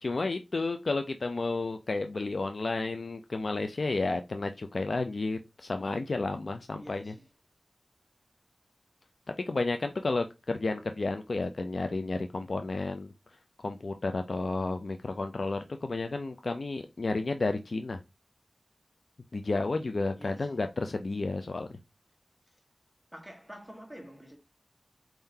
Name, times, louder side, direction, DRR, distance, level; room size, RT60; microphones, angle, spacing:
voice 1, 0.0-7.1 9.5-13.1 13.6-18.0 19.3-21.7, left 3 dB, 60° left, 0.4 m, -32 dB
voice 2, 6.8-7.3 20.2-20.6 22.5-22.6 23.1-24.4, equal, ahead, 1.4 m, -48 dB
4.4 x 3.7 x 2.7 m
wide cardioid pair, 80°, 0 cm